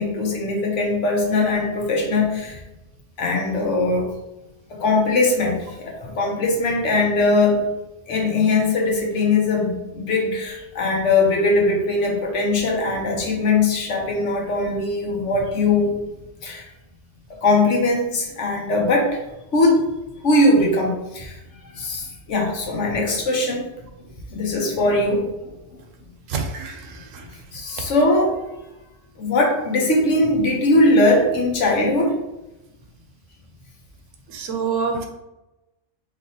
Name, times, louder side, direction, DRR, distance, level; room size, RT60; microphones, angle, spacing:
voice 1, 0.0-2.6 3.2-4.1 4.7-7.7 8.1-16.0 16.4-16.6 17.3-19.2 19.5-19.9 20.2-21.4 21.7-23.7 24.0-25.5 27.5-28.3 29.2-32.1, left 2 dB, 70° left, 0 dB, 1.2 m, -20 dB
voice 2, 26.3-26.8 27.1-27.2 34.3-35.1, right 5 dB, 80° right, 4 dB, 1.1 m, -26 dB
4.5 x 3.4 x 2.8 m, 0.97 s
omnidirectional pair, 1.3 m